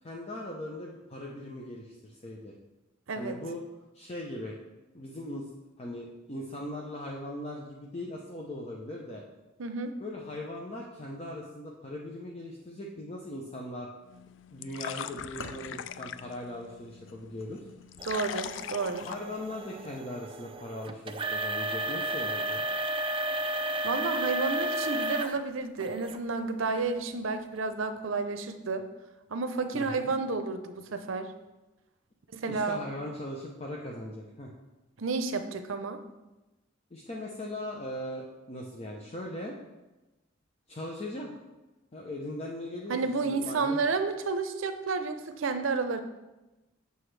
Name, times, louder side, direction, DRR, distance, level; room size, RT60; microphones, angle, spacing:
voice 1, 0.0-2.5 3.2-3.6 3.9-4.5 4.9-5.5 5.8-9.2 10.0-13.9 14.5-17.6 19.1-22.7 29.7-30.1 32.5-34.5 36.9-39.6 40.7-41.3 41.9-43.0 43.2-43.8, left 1 dB, 30° left, -2 dB, 0.7 m, -39 dB
voice 2, 9.6-9.9 18.0-19.1 23.8-28.9 29.3-31.3 32.3-32.8 35.0-36.0 42.9-46.0, right 4 dB, 80° right, 9 dB, 0.6 m, -31 dB
sound 1, 14.1-20.0, left 9 dB, 65° left, 0.3 m, -42 dB
sound 2, 15.2-19.0, left 2 dB, 85° left, 0.8 m, -50 dB
sound 3, 18.0-25.4 25.8-26.2 26.8-26.9 27.6-27.7, right 1 dB, 25° right, 0.4 m, -33 dB
7.8 x 6.7 x 3.3 m, 1.1 s
head